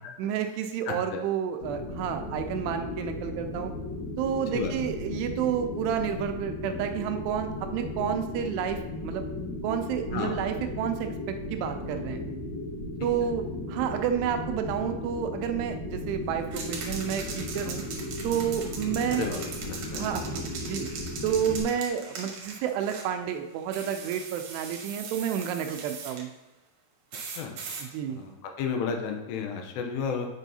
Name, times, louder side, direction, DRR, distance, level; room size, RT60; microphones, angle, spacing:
voice 1, 0.2-3.7 4.2-9.3 9.6-12.2 13.0-17.8 18.2-19.3 19.9-20.9 21.2-26.3 27.8-28.2, right 9 dB, 85° right, 6 dB, 2.6 m, -30 dB
voice 2, 0.9-1.2 4.5-4.7 10.1-10.4 19.1-20.1 27.4-27.5 28.1-28.3 28.6-30.3, left 6 dB, 85° left, 3 dB, 2.9 m, -32 dB
sound 1, 1.6-21.6, left 2 dB, 60° left, 1.2 m, -36 dB
sound 2, 16.5-23.1 23.7-26.2 27.1-27.9, right 5 dB, 65° right, 2.0 m, -40 dB
8.9 x 5.4 x 2.8 m, 0.96 s
omnidirectional pair, 4.9 m